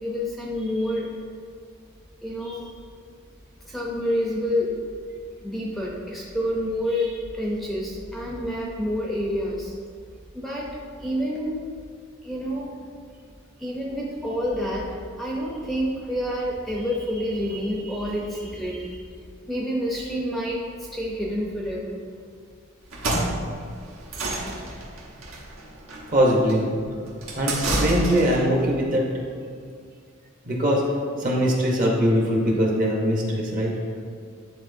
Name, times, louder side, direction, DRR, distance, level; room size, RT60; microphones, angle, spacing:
voice 1, 0.0-1.1 2.2-2.8 3.6-4.7 5.4-9.7 10.3-10.7 11.0-11.6 12.2-12.7 13.6-19.1 19.5-22.0, equal, ahead, -4 dB, 0.6 m, -28 dB
sound 1, 22.8-28.5, right 1 dB, 75° right, 1.2 m, -29 dB
voice 2, 26.1-26.6 27.3-29.0 30.4-30.8 31.2-33.7, equal, 40° right, -1 dB, 1.0 m, -21 dB
10.0 x 3.9 x 2.7 m, 2.1 s
head